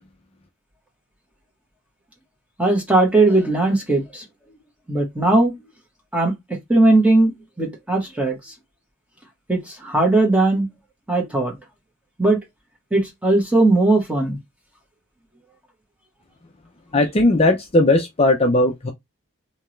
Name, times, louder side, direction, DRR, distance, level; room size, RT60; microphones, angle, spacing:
voice 1, 2.6-4.2 4.9-5.5 6.1-6.3 6.7-7.3 7.6-8.4 9.5-10.7 11.1-11.5 12.2-12.4 12.9-14.4, right 2 dB, 5° right, 1.3 m, -18 dB
voice 2, 16.9-18.9, left 2 dB, 30° left, 0.5 m, -17 dB
3.5 x 2.9 x 3.1 m
head